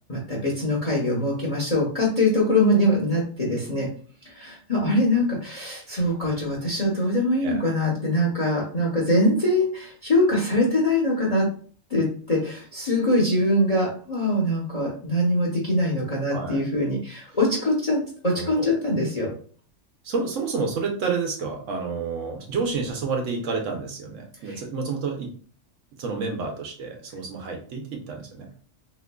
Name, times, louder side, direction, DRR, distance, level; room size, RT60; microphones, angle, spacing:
voice 1, 0.1-3.9 4.2-11.5 11.9-19.3 24.4-24.6, left 1 dB, 35° left, -3 dB, 0.8 m, -23 dB
voice 2, 16.3-16.6 18.3-18.7 20.0-25.3 26.0-28.5, right 4 dB, 75° right, 2 dB, 1.1 m, -29 dB
3.6 x 2.9 x 2.2 m, 0.43 s
omnidirectional pair, 1.3 m